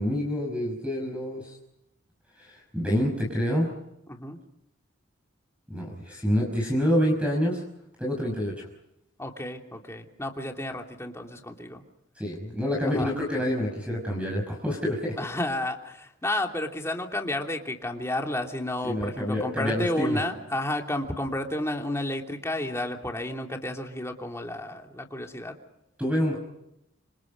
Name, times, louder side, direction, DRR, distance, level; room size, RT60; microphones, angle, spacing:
voice 1, 0.0-1.6 2.4-3.7 5.7-7.6 8.0-8.7 12.2-15.2 18.8-20.2 26.0-26.4, equal, 5° right, -1 dB, 5.7 m, -27 dB
voice 2, 4.1-4.4 9.2-11.8 12.9-13.1 15.2-25.5, left 1 dB, 15° left, 2 dB, 3.0 m, -31 dB
29.0 x 27.0 x 5.4 m, 0.84 s
head